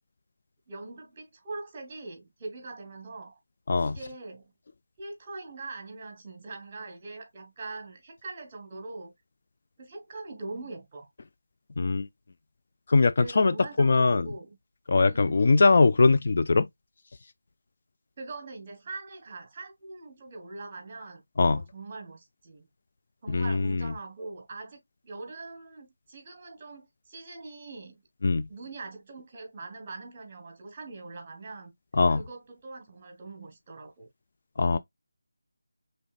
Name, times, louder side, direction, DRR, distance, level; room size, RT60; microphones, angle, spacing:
voice 1, 0.7-3.4 3.8-4.5 5.0-9.1 9.8-11.1 13.2-14.6 15.0-15.5 18.2-22.7 23.2-24.8 25.0-28.0 28.5-31.7 32.1-34.1 34.7-34.8, right 3 dB, 25° right, 1.4 m, -42 dB
voice 2, 12.9-14.3 14.9-16.7 21.4-21.6 23.3-23.9 28.2-28.5 31.9-32.2 34.6-34.8, left 3 dB, 45° left, 0.3 m, -21 dB
5.4 x 3.3 x 2.4 m
figure-of-eight pair, 170°, 0 cm